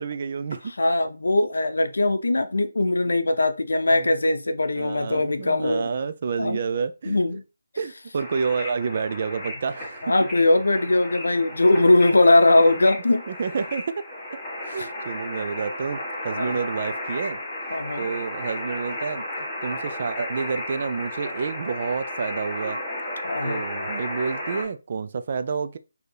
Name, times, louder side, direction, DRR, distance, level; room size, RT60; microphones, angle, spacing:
voice 1, 0.0-0.7 3.9-4.1 4.8-7.4 7.8-10.1 13.3-14.4 14.6-16.0 16.2-17.4 18.0-19.2 19.6-22.8 23.4-25.8, right 5 dB, 40° right, 0.3 m, -29 dB
voice 2, 0.8-5.9 6.4-6.6 7.1-7.4 10.0-13.2 14.8-14.9 16.4-16.6 17.7-18.1 23.2-23.6, left 2 dB, 85° left, 0.5 m, -20 dB
sound 1, 8.2-24.6, left 1 dB, 5° left, 1.5 m, -34 dB
4.3 x 2.8 x 3.3 m
hypercardioid pair, 170°, 0 cm